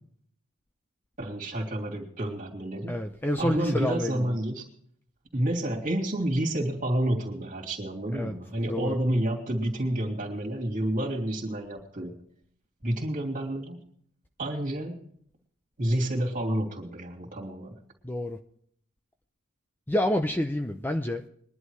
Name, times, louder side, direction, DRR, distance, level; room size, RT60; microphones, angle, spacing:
voice 1, 1.2-2.9 3.4-4.6 5.3-12.1 12.8-13.8 14.4-15.0 15.8-17.8, right 1 dB, 40° right, 0 dB, 2.8 m, -29 dB
voice 2, 2.9-4.4 8.1-8.3 8.7-9.0 18.0-18.4 19.9-21.3, left 1 dB, 10° left, 6 dB, 0.5 m, -28 dB
22.0 x 11.0 x 3.2 m, 0.65 s
head